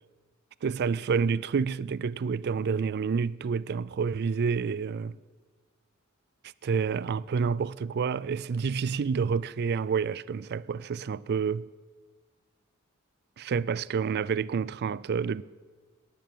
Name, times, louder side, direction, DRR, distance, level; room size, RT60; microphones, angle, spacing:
voice 1, 0.6-5.2 6.6-11.7 13.4-15.4, right 6 dB, 50° right, 0.4 m, -28 dB
14.0 x 10.5 x 7.6 m
head